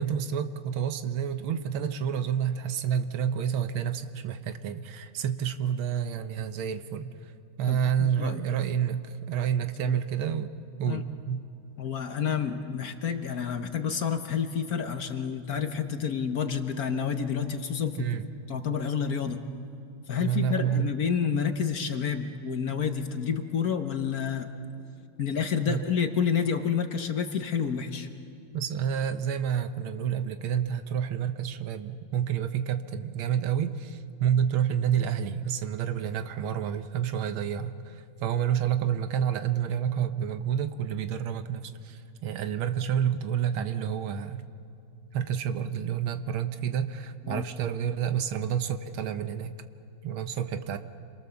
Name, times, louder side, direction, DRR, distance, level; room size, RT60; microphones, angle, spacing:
voice 1, 0.0-7.3 7.6-10.5 10.8-11.4 18.0-18.2 19.3-19.4 20.2-20.9 25.7-25.9 28.5-44.4 45.1-49.6 50.0-50.8, right 8 dB, 80° right, 9 dB, 1.8 m, -29 dB
voice 2, 7.7-8.4 9.8-10.0 10.9-11.0 11.8-18.1 18.5-19.4 20.1-24.5 25.2-28.1 47.2-47.4, left 7 dB, 55° left, 7 dB, 1.3 m, -29 dB
28.5 x 23.0 x 7.0 m, 2.5 s
omnidirectional pair, 2.2 m